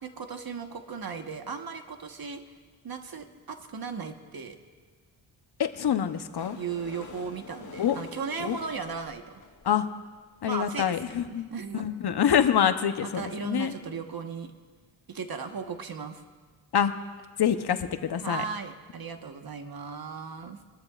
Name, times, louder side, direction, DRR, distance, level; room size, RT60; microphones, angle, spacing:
voice 1, 0.0-2.5 2.8-4.6 6.5-9.4 10.4-11.9 13.0-14.5 15.1-16.2 18.2-20.6, right 5 dB, 50° right, 6 dB, 1.4 m, -36 dB
voice 2, 5.6-6.6 7.8-8.0 8.4-8.6 9.6-9.9 10.4-11.5 11.7-13.7 16.7-16.9 17.4-18.4, left 9 dB, 55° left, 9 dB, 0.9 m, -26 dB
sound 1, 6.4-10.2 10.9-11.0 11.2-11.3 11.5-11.6 11.9-12.0, left 4 dB, 40° left, 1.9 m, -47 dB
22.5 x 13.0 x 2.5 m, 1.5 s
cardioid pair, 55°, 46 cm